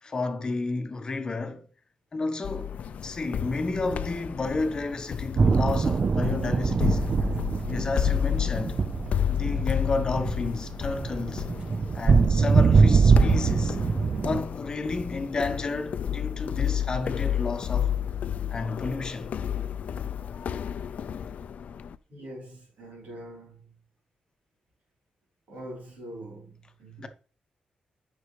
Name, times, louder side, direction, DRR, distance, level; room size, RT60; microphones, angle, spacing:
voice 1, 0.0-1.7 2.1-7.0 7.7-8.8 9.3-11.4 11.9-13.8 14.2-17.9 18.5-19.3 27.0-27.1, left 3 dB, 30° left, 1.0 m, -31 dB
sound 1, 2.4-22.0, left 9 dB, 60° left, 0.4 m, -31 dB
sound 2, 5.4-14.4, right 5 dB, 35° right, 0.3 m, -23 dB
voice 2, 22.1-23.8 25.5-27.1, right 1 dB, 85° right, 3.9 m, -43 dB
9.3 x 6.1 x 3.2 m
wide cardioid pair, 155°, 3 cm